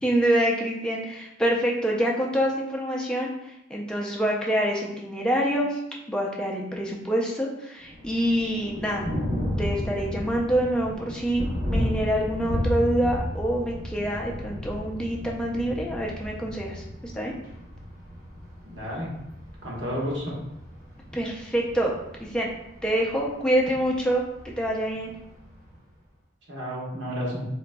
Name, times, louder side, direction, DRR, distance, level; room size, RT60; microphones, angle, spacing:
voice 1, 0.0-5.8 6.1-9.0 9.6-17.3 21.1-21.9 22.2-22.5 22.8-24.2 24.6-25.1, right 1 dB, 5° left, -2 dB, 0.4 m, -26 dB
Thunder, 7.8-25.8, equal, 50° right, 1.2 m, -33 dB
voice 2, 18.6-19.1 19.6-20.3 26.5-27.5, equal, 75° right, -4 dB, 1.0 m, -31 dB
3.9 x 2.5 x 2.2 m, 0.86 s
head